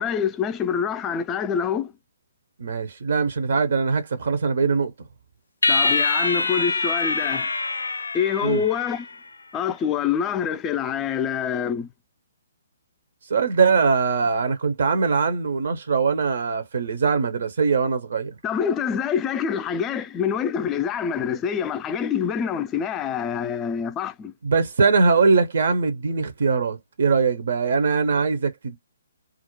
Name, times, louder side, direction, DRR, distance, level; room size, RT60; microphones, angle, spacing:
voice 1, 0.0-1.9 5.7-7.5 8.1-9.1 9.5-11.9 18.4-24.3, left 7 dB, 20° left, 0.3 m, -26 dB
voice 2, 2.6-4.9 8.4-8.6 13.3-18.3 24.4-28.8, right 5 dB, 65° right, 0.6 m, -21 dB
sound 1, 5.6-9.2, left 3 dB, 80° left, 0.4 m, -24 dB
2.4 x 2.0 x 2.9 m
figure-of-eight pair, 135°, 0 cm